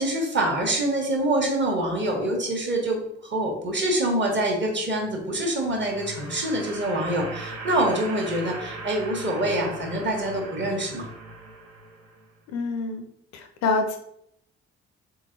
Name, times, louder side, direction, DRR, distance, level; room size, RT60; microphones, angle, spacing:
voice 1, 0.0-11.1, right 1 dB, 35° right, 1 dB, 1.2 m, -25 dB
sound 1, 5.2-12.3, right 3 dB, 65° right, 0.8 m, -39 dB
voice 2, 12.5-13.1 13.3-14.0, left 3 dB, 50° left, 6 dB, 0.5 m, -26 dB
3.8 x 3.7 x 2.6 m, 0.74 s
figure-of-eight pair, 40°, 34 cm